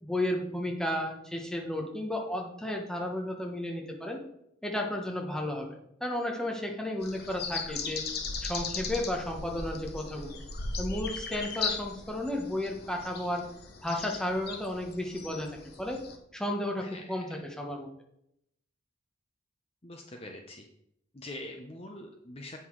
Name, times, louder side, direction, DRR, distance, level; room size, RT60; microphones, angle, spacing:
voice 1, 0.0-4.2 4.6-8.1 8.4-10.4 10.8-13.5 13.8-16.0 16.3-17.9, left 1 dB, 5° left, 0 dB, 1.1 m, -33 dB
sound 1, 7.0-16.2, left 4 dB, 55° left, 1.1 m, -38 dB
voice 2, 19.8-20.7 21.1-22.6, left 1 dB, 30° left, 2 dB, 0.7 m, -44 dB
8.2 x 5.8 x 4.7 m, 0.77 s
head